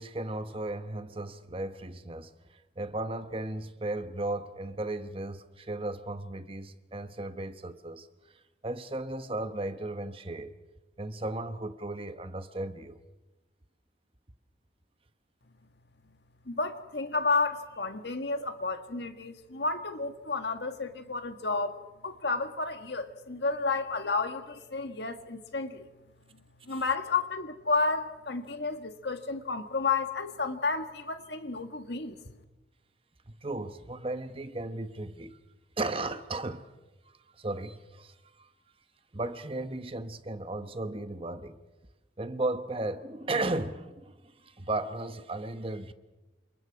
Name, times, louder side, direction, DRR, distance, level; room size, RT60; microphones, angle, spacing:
voice 1, 0.0-8.1 8.3-10.5 11.0-13.0 26.7-26.8 33.3-35.4 35.8-36.7 37.1-38.5 39.1-41.6 42.2-45.9, right 2 dB, 30° right, 1.0 m, -35 dB
voice 2, 16.5-25.9 26.7-32.2, left 3 dB, 70° left, 1.7 m, -31 dB
29.5 x 27.0 x 4.8 m
head